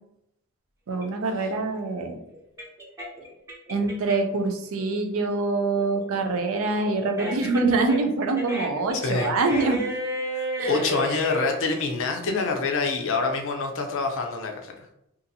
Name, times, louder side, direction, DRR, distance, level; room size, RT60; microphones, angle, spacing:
sound 1, 0.9-4.4 4.8-11.5, right 1 dB, 15° right, 0.7 m, -33 dB
voice 1, 0.9-2.1 3.7-9.8 10.6-10.8, right 3 dB, 65° right, 5 dB, 0.5 m, -25 dB
voice 2, 9.0-9.3 10.3-14.9, left 4 dB, 65° left, 3 dB, 0.5 m, -26 dB
2.7 x 2.5 x 2.6 m, 0.81 s
head